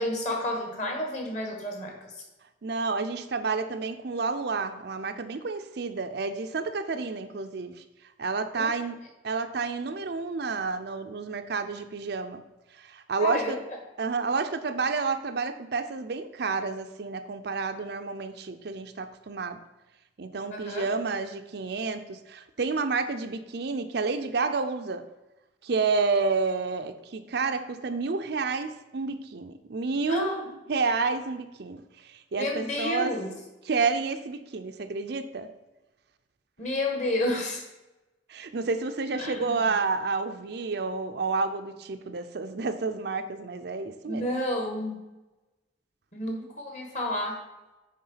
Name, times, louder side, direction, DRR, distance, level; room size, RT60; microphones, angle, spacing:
voice 1, 0.0-2.1 8.6-8.7 13.2-13.5 20.5-20.8 30.1-30.4 32.4-33.3 36.6-37.6 39.2-39.6 44.1-45.0 46.1-47.4, left 1 dB, 40° left, 1 dB, 1.7 m, -30 dB
voice 2, 2.6-7.8 8.2-9.0 9.2-12.4 12.7-13.6 14.0-19.6 20.2-25.0 25.6-33.2 33.6-35.5 38.3-44.3, right 4 dB, 60° right, 8 dB, 0.5 m, -30 dB
9.4 x 3.7 x 5.7 m, 1.0 s
head